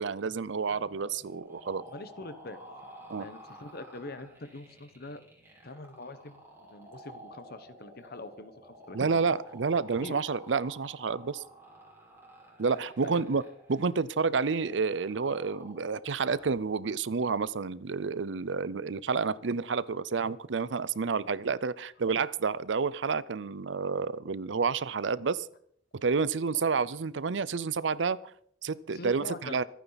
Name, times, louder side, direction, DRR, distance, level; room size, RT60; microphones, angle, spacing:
voice 1, 0.0-1.9 3.1-3.3 8.9-11.4 12.6-13.4 13.7-25.5 25.9-28.2 28.6-29.6, right 5 dB, 70° right, 19 dB, 0.6 m, -29 dB
sound 1, 0.7-16.6, right 1 dB, 15° right, 5.0 m, -52 dB
voice 2, 1.9-2.6 3.2-5.2 5.6-6.4 6.7-9.4 10.0-10.2 13.0-13.3 26.2-26.3 26.5-26.6 28.9-29.6, left 2 dB, 55° left, 11 dB, 1.2 m, -44 dB
26.0 x 9.3 x 4.1 m, 0.65 s
head